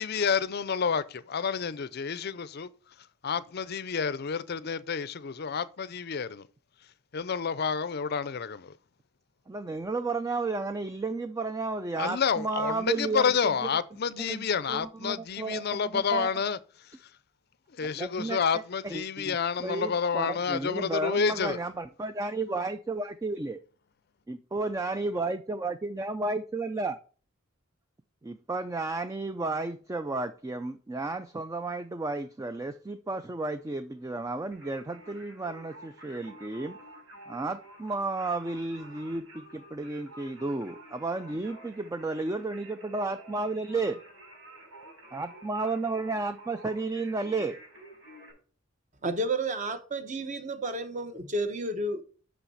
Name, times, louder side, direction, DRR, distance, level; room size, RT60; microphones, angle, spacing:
voice 1, 0.0-2.7 3.2-6.5 7.1-8.7 12.0-16.6 17.7-21.6, left 6 dB, 50° left, 0.5 m, -29 dB
voice 2, 9.5-13.2 14.3-16.3 17.8-23.6 24.3-27.0 28.2-36.8 37.3-44.0 45.1-47.6, right 3 dB, 15° right, 0.3 m, -33 dB
Singing, 34.5-48.3, right 1 dB, 85° right, 4.6 m, -50 dB
voice 3, 49.0-52.0, right 2 dB, 35° right, 0.9 m, -31 dB
6.4 x 5.8 x 5.4 m
head